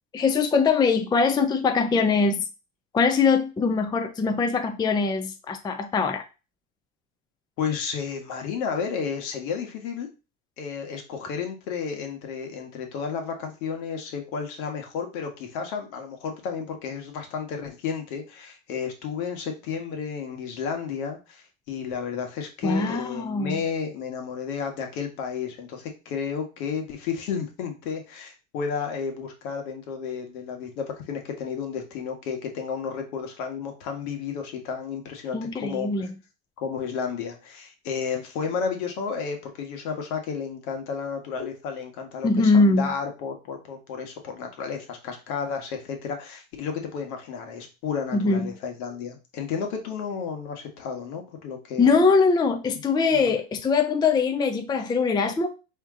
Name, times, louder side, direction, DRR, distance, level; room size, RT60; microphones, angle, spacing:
voice 1, 0.1-2.4 2.9-6.2 22.6-23.6 35.3-36.1 42.2-42.9 48.1-48.5 51.8-55.5, left 4 dB, 10° left, 7 dB, 0.4 m, -22 dB
voice 2, 7.6-10.1 10.6-36.1 36.6-51.9 52.7-52.8 53.1-53.3, left 6 dB, 80° left, 4 dB, 1.4 m, -32 dB
4.4 x 2.9 x 3.6 m, 0.30 s
supercardioid pair, 105°, 43 cm